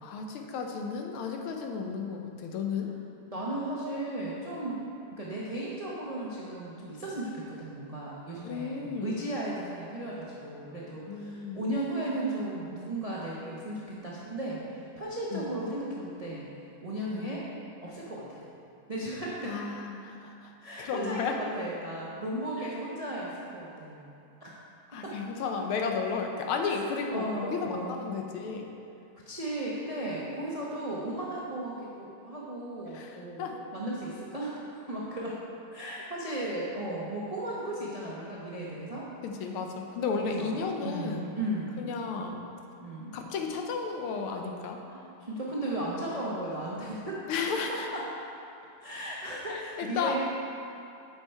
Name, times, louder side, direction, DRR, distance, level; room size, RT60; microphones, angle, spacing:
voice 1, 0.0-2.9 8.4-9.2 11.1-11.7 15.3-15.5 17.1-17.3 19.4-20.3 20.8-21.4 22.6-22.7 24.9-28.7 32.9-33.6 39.2-41.3 41.8-42.4 43.1-44.8 47.3-47.9 49.5-50.2, left 5 dB, 80° left, 3 dB, 1.6 m, -33 dB
voice 2, 3.3-4.8 5.1-16.4 16.8-17.4 17.8-18.4 18.9-19.5 20.6-24.0 24.4-24.5 24.9-25.2 27.1-28.0 29.3-34.6 34.9-35.4 35.7-39.1 40.2-41.8 42.8-43.1 44.9-47.2 47.7-48.1 48.8-50.2, right 1 dB, 80° right, -6 dB, 0.3 m, -35 dB
8.3 x 5.8 x 4.5 m, 2.7 s
omnidirectional pair, 2.4 m